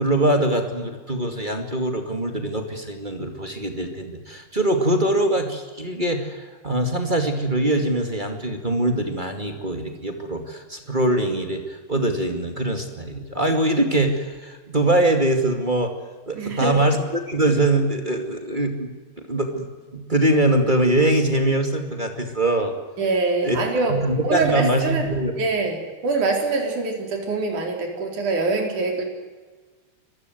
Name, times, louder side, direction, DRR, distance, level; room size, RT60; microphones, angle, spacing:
voice 1, 0.0-15.9 16.3-17.0 17.3-18.9 19.2-22.7 23.4-23.6 23.9-25.4, right 1 dB, 15° right, 5 dB, 1.9 m, -23 dB
voice 2, 16.4-16.8 23.0-23.9 24.2-25.1 25.4-29.1, right 3 dB, 65° right, 2 dB, 5.6 m, -24 dB
25.5 x 15.5 x 9.4 m, 1.3 s
omnidirectional pair, 3.9 m